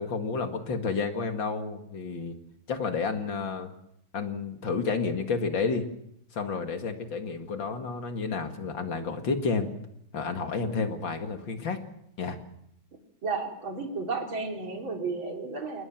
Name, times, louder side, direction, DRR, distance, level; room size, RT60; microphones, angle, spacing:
voice 1, 0.0-2.4 2.7-3.7 4.1-5.8 6.3-9.7 10.1-11.8 12.2-12.4, left 4 dB, 70° left, 5 dB, 2.8 m, -30 dB
voice 2, 13.2-15.8, right 4 dB, 85° right, 2 dB, 4.4 m, -33 dB
29.0 x 19.0 x 6.0 m, 0.76 s
omnidirectional pair, 2.1 m